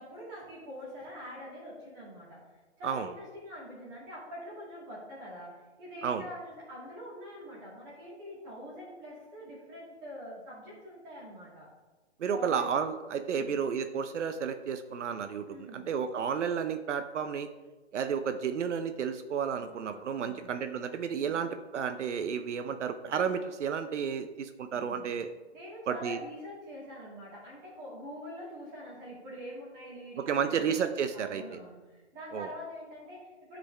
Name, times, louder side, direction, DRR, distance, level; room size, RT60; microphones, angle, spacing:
voice 1, 0.0-2.5 2.8-11.7 12.3-12.7 15.5-15.9 19.6-20.6 21.1-21.4 24.7-25.1 25.5-33.6, equal, 15° right, -6 dB, 2.2 m, -45 dB
voice 2, 12.2-17.5 17.9-25.3 25.9-26.2 30.2-31.6 32.3-32.5, right 7 dB, 85° right, 9 dB, 0.7 m, -32 dB
11.5 x 5.1 x 3.3 m, 1.2 s
hypercardioid pair, 180°, 35 cm